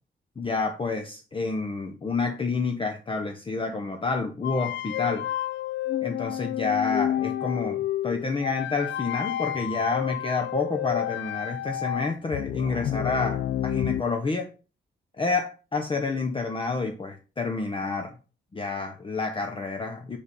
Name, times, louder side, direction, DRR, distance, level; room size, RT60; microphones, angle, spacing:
voice 1, 0.4-5.3 6.0-14.5 15.2-18.1 18.5-20.2, left 4 dB, 25° left, 5 dB, 0.8 m, -29 dB
sound 1, 4.4-14.0, left 12 dB, 70° left, 0.4 m, -30 dB
5.1 x 4.7 x 5.3 m, 0.34 s
cardioid pair, 110°, 19 cm